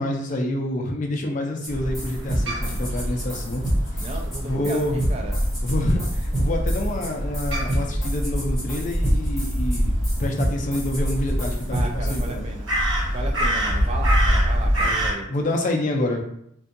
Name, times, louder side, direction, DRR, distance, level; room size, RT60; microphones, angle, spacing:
voice 1, 0.0-3.6 3.9-4.1 4.4-5.0 5.6-9.9 10.2-12.4 14.6-16.2, left 1 dB, 40° left, 2 dB, 0.4 m, -27 dB
sound 1, 1.6-1.7 1.9-12.3, equal, ahead, 0.7 m, -28 dB
Crow, 1.7-15.1, equal, 75° right, 0.9 m, -25 dB
voice 2, 4.0-5.4 11.7-12.7 13.1-15.3, right 2 dB, 30° right, 1 dB, 0.4 m, -34 dB
2.6 x 2.3 x 2.5 m, 0.73 s
head